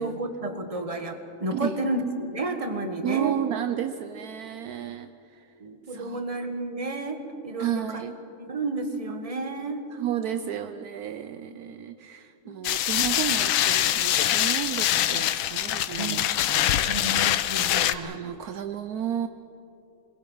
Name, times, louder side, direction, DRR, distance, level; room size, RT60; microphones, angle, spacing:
voice 1, 0.0-3.3 5.6-8.0 8.4-9.8 10.3-10.4 11.5-11.8 12.4-12.5 16.0-16.4 16.8-18.2, right 2 dB, 20° right, 5 dB, 1.5 m, -32 dB
voice 2, 1.5-1.8 3.0-5.5 5.9-6.2 7.6-8.2 9.9-17.2 17.7-19.3, right 10 dB, 75° right, 10 dB, 0.8 m, -33 dB
sound 1, 12.6-17.9, left 12 dB, 75° left, 1.4 m, -24 dB
26.5 x 21.5 x 5.6 m, 2.7 s
omnidirectional pair, 2.3 m